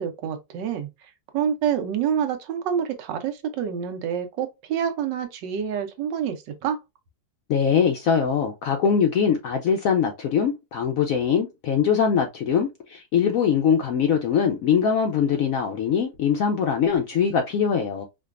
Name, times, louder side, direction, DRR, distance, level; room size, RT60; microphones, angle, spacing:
voice 1, 0.0-6.8, right 8 dB, 80° right, 1.4 m, -27 dB
voice 2, 7.5-18.1, left 7 dB, 70° left, 0.8 m, -22 dB
4.9 x 2.2 x 2.4 m
omnidirectional pair, 1.9 m